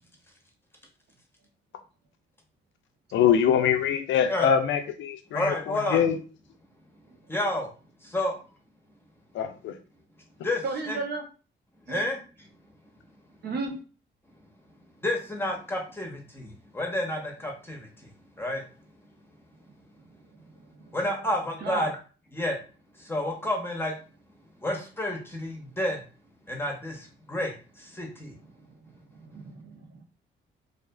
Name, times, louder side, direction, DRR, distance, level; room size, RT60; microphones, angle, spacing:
voice 1, 3.1-6.2 9.3-9.8, left 8 dB, 70° left, 7 dB, 0.5 m, -24 dB
voice 2, 5.3-6.1 7.3-7.7 8.1-8.4 10.4-10.6 10.9-11.0 11.9-12.2 15.0-17.8 18.4-18.6 20.9-21.9 22.3-22.5 23.1-23.9 24.6-26.0 26.5-26.9 27.3-27.5 28.0-28.3, left 1 dB, 10° left, 0 dB, 0.8 m, -29 dB
voice 3, 10.6-11.2 11.9-12.0 13.4-13.7 20.5-20.9 21.6-21.9 29.1-30.0, right 3 dB, 55° right, 2 dB, 0.8 m, -34 dB
2.5 x 2.4 x 2.2 m, 0.36 s
cardioid pair, 90°, 20 cm